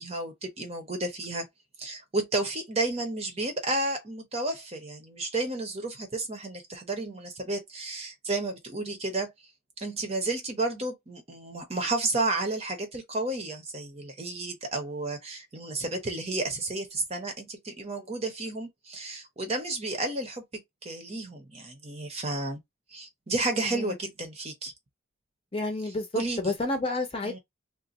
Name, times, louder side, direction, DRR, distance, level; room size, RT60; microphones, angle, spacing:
voice 1, 0.0-1.4 1.8-9.3 9.8-22.6 22.9-24.7 26.1-26.5 27.2-27.4, right 2 dB, 30° right, 0.8 m, -32 dB
voice 2, 25.5-27.4, left 2 dB, 25° left, 0.8 m, -30 dB
2.5 x 2.2 x 4.0 m
head